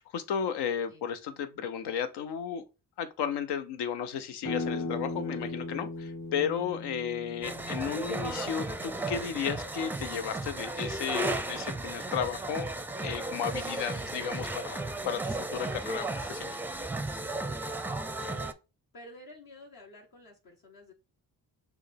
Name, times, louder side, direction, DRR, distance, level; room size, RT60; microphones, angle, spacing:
voice 1, 0.0-2.6 3.0-12.7 13.0-16.6, left 8 dB, 80° left, 0.7 m, -34 dB
sound 1, 4.4-10.0, left 2 dB, 30° left, 1.2 m, -38 dB
sound 2, 7.4-18.5, right 2 dB, 5° right, 0.4 m, -35 dB
voice 2, 18.1-18.6 18.9-20.9, left 2 dB, 60° left, 1.1 m, -50 dB
6.2 x 2.2 x 3.4 m
supercardioid pair, 55°, 40 cm